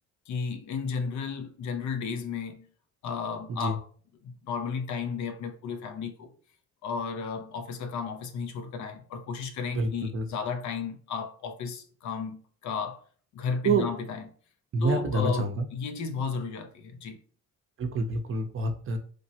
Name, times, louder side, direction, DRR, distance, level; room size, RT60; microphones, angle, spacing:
voice 1, 0.3-2.7 3.0-3.9 4.2-6.3 6.8-13.0 13.3-14.3 14.8-17.2, left 5 dB, 70° left, 0.6 m, -33 dB
voice 2, 9.7-10.3 13.6-13.9 14.7-15.7 17.8-19.0, right 3 dB, 45° right, 0.6 m, -27 dB
3.3 x 2.1 x 2.7 m
cardioid pair, 90°, 30 cm